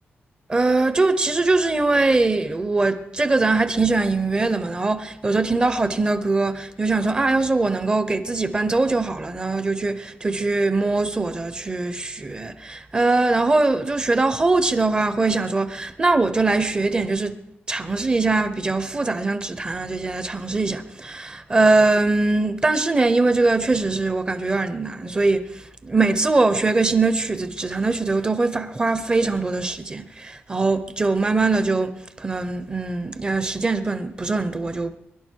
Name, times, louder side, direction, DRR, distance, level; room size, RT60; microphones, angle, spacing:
voice 1, 0.5-17.3 17.7-34.9, right 3 dB, 20° right, 1.0 m, -22 dB
23.5 x 11.5 x 4.7 m
wide cardioid pair, 150°, 4 cm